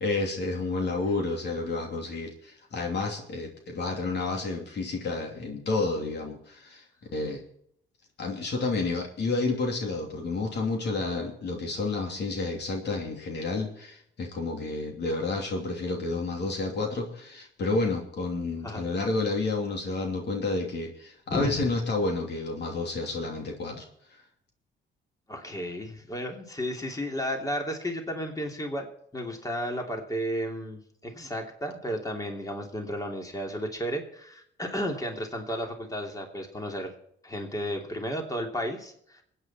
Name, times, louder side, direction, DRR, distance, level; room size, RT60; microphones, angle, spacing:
voice 1, 0.0-7.4 8.2-23.8, left 3 dB, 60° left, 2 dB, 2.9 m, -30 dB
voice 2, 25.3-28.9 29.1-36.9 37.2-39.2, equal, 15° left, 2 dB, 3.1 m, -33 dB
22.5 x 9.2 x 4.4 m, 0.69 s
cardioid pair, 90°, 20 cm